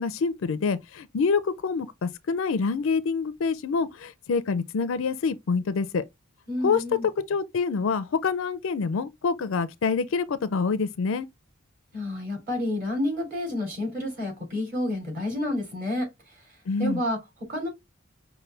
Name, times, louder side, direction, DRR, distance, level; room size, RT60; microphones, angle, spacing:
voice 1, 0.0-6.0 6.6-6.8 7.3-11.3 16.7-17.0, left 5 dB, 70° left, 0.4 m, -26 dB
voice 2, 6.5-7.1 11.9-16.4 16.8-17.7, left 1 dB, 40° right, 3.3 m, -30 dB
5.5 x 2.2 x 3.2 m
head